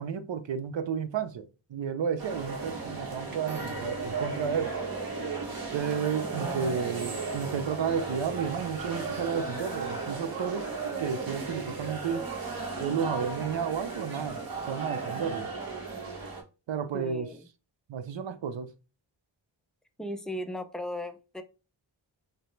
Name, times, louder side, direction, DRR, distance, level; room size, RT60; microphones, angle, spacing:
voice 1, 0.0-4.7 5.7-10.7 11.0-12.3 12.8-15.5 16.7-17.3 17.9-18.7, right 7 dB, 70° right, 0.6 m, -32 dB
sound 1, 2.2-16.4, right 4 dB, 50° right, 1.1 m, -35 dB
voice 2, 6.2-6.8 16.9-17.4 20.0-21.4, equal, ahead, 0.4 m, -37 dB
5.2 x 2.0 x 3.2 m
wide cardioid pair, 95°, 47 cm